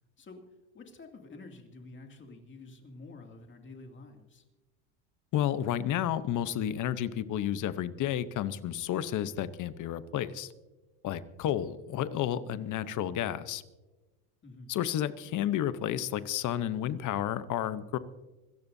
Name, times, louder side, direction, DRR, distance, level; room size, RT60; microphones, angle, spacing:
voice 1, 0.7-4.4 14.4-14.7, left 3 dB, 25° left, 4 dB, 2.5 m, -49 dB
voice 2, 5.3-10.5 11.0-13.6 14.7-18.0, left 11 dB, 45° left, 14 dB, 0.9 m, -31 dB
26.0 x 14.0 x 2.7 m, 1.1 s
supercardioid pair, 120°, 43 cm